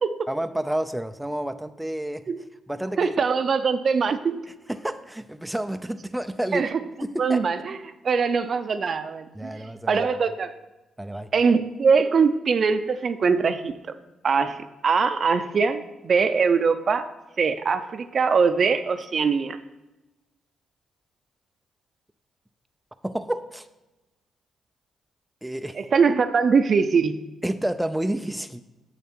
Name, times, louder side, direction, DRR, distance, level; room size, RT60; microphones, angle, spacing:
voice 1, 0.3-2.2 2.7-3.1 4.7-6.7 7.1-7.4 9.4-10.1 11.0-11.3 23.0-23.7 25.4-25.8 27.4-28.6, right 1 dB, 5° right, 9 dB, 0.4 m, -29 dB
voice 2, 3.0-4.3 6.5-6.8 7.2-7.8 8.0-10.5 11.3-13.9 14.2-17.1 17.4-19.6 25.8-27.2, right 5 dB, 50° right, 11 dB, 0.6 m, -22 dB
7.4 x 7.0 x 4.4 m, 1.0 s
cardioid pair, 70°, 0 cm